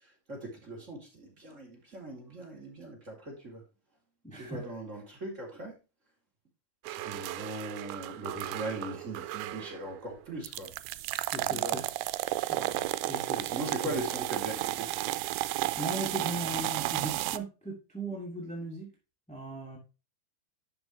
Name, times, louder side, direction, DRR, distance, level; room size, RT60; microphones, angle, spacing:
voice 1, 0.3-3.6 4.3-5.7 6.8-10.7 11.4-11.8 12.6-12.9 13.4-14.9, right 1 dB, 20° right, -1 dB, 3.7 m, -40 dB
voice 2, 4.2-4.7 11.3-11.9 12.5-12.7 13.0-14.0 15.8-18.9 19.3-19.8, right 1 dB, 5° left, -2 dB, 1.7 m, -38 dB
sound 1, 6.9-10.0 10.4-17.4, right 17 dB, 90° right, 2.6 m, -33 dB
11.5 x 6.8 x 3.3 m, 0.28 s
omnidirectional pair, 4.3 m